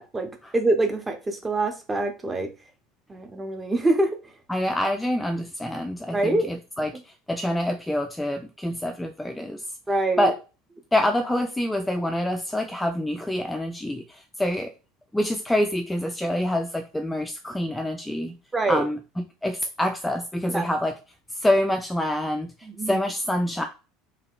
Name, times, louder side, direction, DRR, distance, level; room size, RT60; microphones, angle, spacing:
voice 1, 0.0-2.5 3.1-4.1 6.1-6.5 9.9-10.3 18.5-18.8 20.5-20.7 22.6-23.0, right 2 dB, 20° right, 0.7 m, -25 dB
voice 2, 4.5-9.6 10.2-10.4 10.9-14.7 15.1-18.4 18.7-20.9 21.3-22.5 22.8-23.6, left 1 dB, 5° left, 0.3 m, -26 dB
3.4 x 2.3 x 2.4 m
figure-of-eight pair, 70°, 0 cm